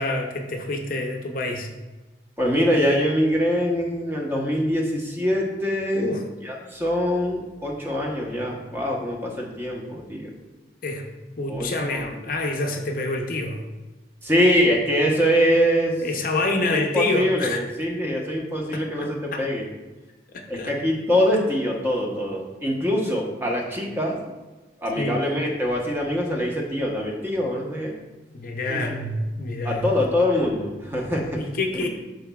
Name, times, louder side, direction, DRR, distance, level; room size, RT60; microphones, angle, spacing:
voice 1, 0.0-1.7 5.9-6.2 10.8-11.1 11.4-13.6 16.0-17.6 18.7-19.5 20.5-20.7 25.0-25.2 28.3-29.9 31.4-31.9, left 2 dB, 50° left, 3 dB, 0.7 m, -27 dB
voice 2, 2.4-6.1 6.4-10.3 11.5-12.1 14.2-16.0 16.6-19.6 20.5-24.2 24.8-27.9 28.7-29.0 29.6-31.4 31.7-31.9, equal, 15° right, -1 dB, 1.0 m, -24 dB
11.5 x 4.0 x 2.3 m, 1.2 s
head